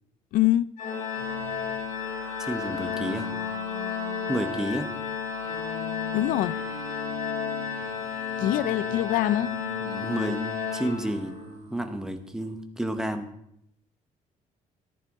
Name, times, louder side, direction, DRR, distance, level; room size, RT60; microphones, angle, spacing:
voice 1, 0.3-0.7 6.1-6.5 8.4-9.5, left 14 dB, 80° left, 0.4 m, -24 dB
Organ, 0.8-11.5, left 7 dB, 60° left, 2.9 m, -32 dB
sound 1, 1.1-12.6, right 5 dB, 50° right, 1.7 m, -46 dB
voice 2, 2.4-3.3 4.3-4.9 9.8-11.4 11.7-13.3, right 1 dB, 5° right, 0.9 m, -31 dB
14.0 x 11.0 x 3.6 m
cardioid pair, 175°, 14 cm